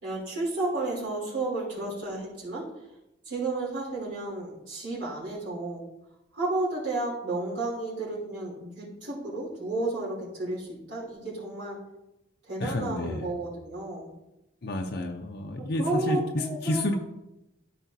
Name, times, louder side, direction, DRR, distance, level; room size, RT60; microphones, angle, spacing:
voice 1, 0.0-2.6 3.2-5.8 6.3-11.8 12.5-14.1 15.8-17.0, right 2 dB, 70° right, -7 dB, 3.3 m, -32 dB
voice 2, 12.6-13.3 14.6-16.9, left 1 dB, 60° left, 2 dB, 0.7 m, -30 dB
13.0 x 5.5 x 2.8 m, 0.91 s
head